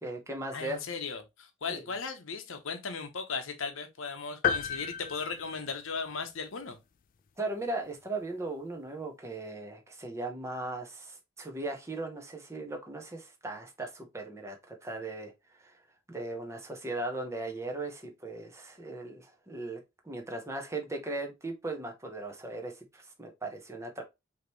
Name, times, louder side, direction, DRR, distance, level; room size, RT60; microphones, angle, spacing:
voice 1, 0.0-0.8 1.7-1.8 7.4-15.3 15.6-15.8 16.1-19.8 20.0-24.0, right 2 dB, 15° right, 0.9 m, -38 dB
voice 2, 0.5-6.8, left 5 dB, 70° left, 0.8 m, -37 dB
sound 1, 4.4-6.2, left 7 dB, 40° left, 0.3 m, -32 dB
5.0 x 2.9 x 3.1 m
head